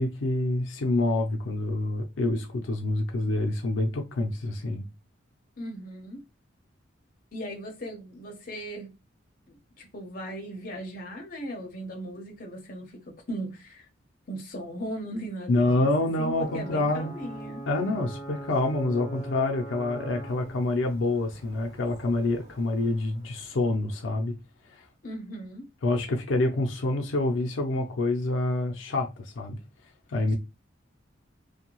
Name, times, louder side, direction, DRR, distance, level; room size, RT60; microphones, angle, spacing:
voice 1, 0.0-4.9 15.5-17.1 17.7-24.4 24.7-24.8 25.8-29.6 30.1-30.4, left 2 dB, 85° left, 0.5 m, -27 dB
voice 2, 5.6-6.2 7.3-8.9 9.8-13.0 13.3-13.9 14.3-17.6 25.0-25.7, equal, 45° left, 0.7 m, -37 dB
Ocean / Boat Water vehicle / Alarm, 16.3-23.9, right 2 dB, 20° right, 1.2 m, -43 dB
2.6 x 2.2 x 2.9 m
head